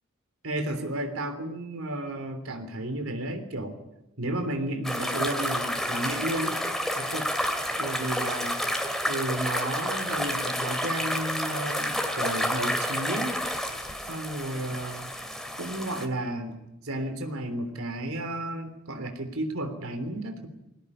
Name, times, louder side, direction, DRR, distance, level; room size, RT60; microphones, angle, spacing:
voice 1, 0.4-3.7 4.2-6.6 6.9-7.3 7.8-8.6 9.0-13.3 14.1-15.1 15.6-16.6 16.8-20.5, right 1 dB, 80° right, 6 dB, 3.4 m, -32 dB
sound 1, 4.8-16.1, equal, ahead, 2.6 m, -30 dB
21.5 x 17.0 x 10.0 m, 0.94 s
head